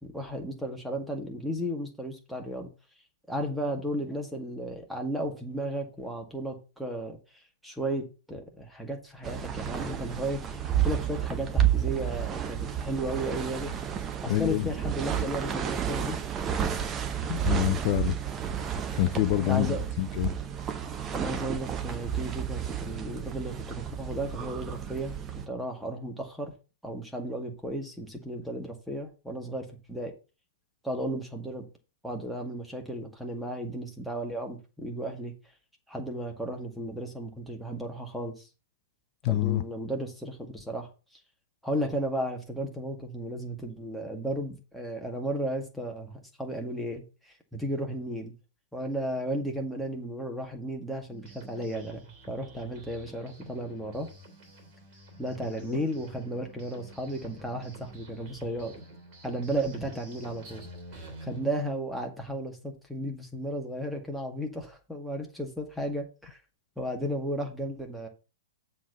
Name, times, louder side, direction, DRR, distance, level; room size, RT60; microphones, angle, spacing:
voice 1, 0.0-2.7 3.3-7.2 7.6-13.7 14.2-16.2 19.5-19.8 21.1-25.1 25.5-26.5 26.8-30.1 30.8-31.6 32.0-35.3 35.9-38.5 39.3-40.9 41.6-47.0 47.5-48.3 48.7-52.0 52.3-54.1 55.2-58.7 59.2-60.6 60.9-66.4 66.8-68.1, right 1 dB, ahead, 2.0 m, -34 dB
sound 1, 9.2-25.5, right 9 dB, 20° right, 0.9 m, -31 dB
voice 2, 14.3-14.7 17.3-18.2 19.0-20.3 39.2-39.6 55.7-55.8, left 15 dB, 40° left, 0.5 m, -26 dB
sound 2, 51.1-61.5, right 2 dB, 40° right, 3.1 m, -48 dB
7.3 x 4.4 x 6.9 m
figure-of-eight pair, 105°, 0 cm